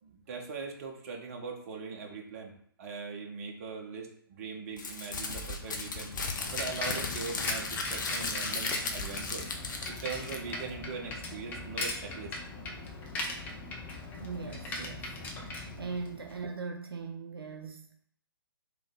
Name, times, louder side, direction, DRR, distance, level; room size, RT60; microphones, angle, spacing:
voice 1, 0.0-6.1 6.5-9.5 9.9-12.4, right 5 dB, 35° right, 1 dB, 0.9 m, -41 dB
Crumpling crinkling, 4.8-10.7, left 3 dB, 55° left, 0.8 m, -36 dB
Bicycle, 5.6-16.4, left 2 dB, 15° left, 0.6 m, -39 dB
voice 2, 14.2-15.2 15.8-17.9, right 4 dB, 70° right, 3 dB, 0.5 m, -39 dB
3.6 x 3.3 x 3.7 m, 0.63 s
figure-of-eight pair, 130°, 13 cm